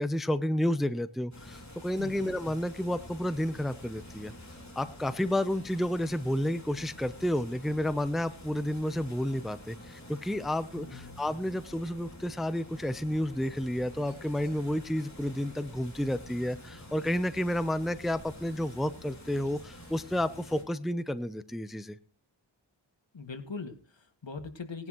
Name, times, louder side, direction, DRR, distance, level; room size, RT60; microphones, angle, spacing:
voice 1, 0.0-4.3 4.8-22.0, left 1 dB, ahead, 13 dB, 0.7 m, -31 dB
sound 1, 1.3-20.6, equal, 35° left, 4.1 m, -48 dB
voice 2, 2.0-2.3 10.7-11.2 23.1-24.9, left 4 dB, 65° left, 6 dB, 2.1 m, -41 dB
19.0 x 11.0 x 3.1 m, 0.38 s
wide cardioid pair, 75°, 47 cm